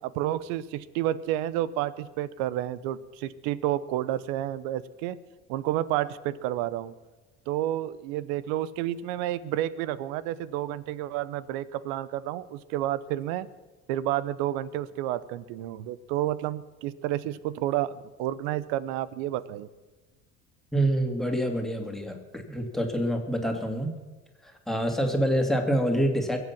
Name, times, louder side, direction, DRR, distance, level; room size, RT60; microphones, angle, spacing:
voice 1, 0.0-5.2 5.5-6.9 7.5-13.5 13.9-19.7, right 13 dB, 70° right, 18 dB, 0.9 m, -30 dB
voice 2, 20.7-23.9 24.4-26.4, right 1 dB, ahead, 3 dB, 2.8 m, -26 dB
22.5 x 8.1 x 6.0 m, 1.2 s
hypercardioid pair, 70°, 36 cm